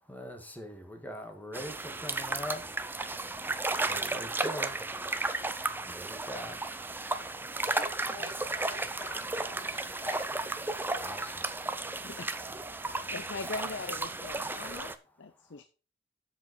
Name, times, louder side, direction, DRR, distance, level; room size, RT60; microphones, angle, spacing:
voice 1, 0.0-8.0 10.6-12.1 12.7-13.1 15.4-15.6, equal, 10° left, 5 dB, 1.6 m, -45 dB
sound 1, 1.5-14.9, right 2 dB, 10° right, 0.6 m, -34 dB
voice 2, 7.6-10.3, left 3 dB, 25° left, 8 dB, 1.1 m, -48 dB
voice 3, 13.1-15.6, left 3 dB, 70° left, 11 dB, 0.6 m, -41 dB
7.7 x 7.3 x 5.3 m, 0.33 s
head